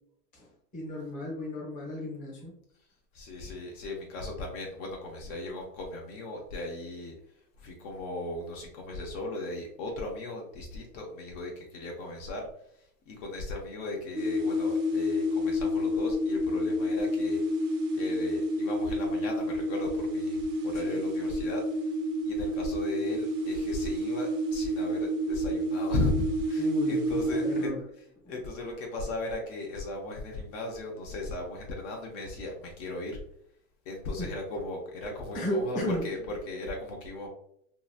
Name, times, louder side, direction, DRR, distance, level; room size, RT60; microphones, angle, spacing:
voice 1, 0.7-2.5 20.9-21.0 26.6-27.8 34.2-34.3 35.3-36.1, equal, 15° left, -2 dB, 0.8 m, -34 dB
voice 2, 3.1-7.1 7.6-12.5 13.1-17.4 17.9-21.9 22.2-27.7 28.3-33.2 33.9-37.3, left 2 dB, 50° left, 0 dB, 0.7 m, -36 dB
sound 1, 14.2-27.7, equal, 80° right, 0.9 m, -29 dB
2.9 x 2.5 x 2.3 m, 0.71 s
supercardioid pair, 135°, 46 cm